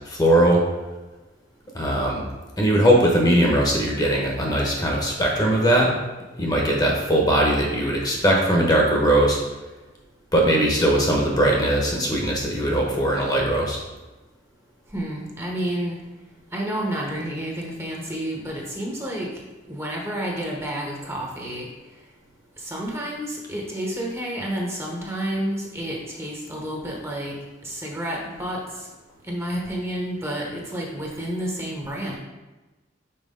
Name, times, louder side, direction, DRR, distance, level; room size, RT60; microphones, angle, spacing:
voice 1, 0.1-0.6 1.7-2.2 2.6-5.9 6.4-9.4 10.3-13.8, right 1 dB, 20° left, -1 dB, 0.9 m, -20 dB
voice 2, 14.9-16.0 16.5-19.3 19.7-21.7 22.6-27.4 27.6-28.6 29.2-32.2, right 1 dB, 15° right, -1 dB, 0.9 m, -30 dB
5.6 x 4.6 x 3.7 m, 1.1 s
head